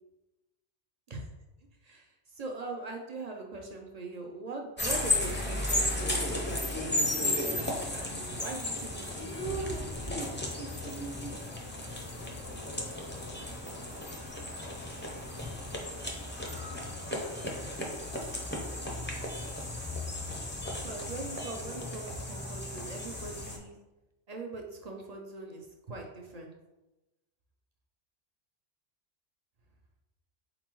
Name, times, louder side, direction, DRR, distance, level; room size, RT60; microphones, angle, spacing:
voice 1, 1.8-10.4 20.7-23.8 24.3-26.5, right 3 dB, 55° right, 1 dB, 0.4 m, -41 dB
sound 1, 4.8-23.6, left 1 dB, 15° left, 0.4 m, -34 dB
4.3 x 4.0 x 3.0 m, 1.0 s
omnidirectional pair, 1.3 m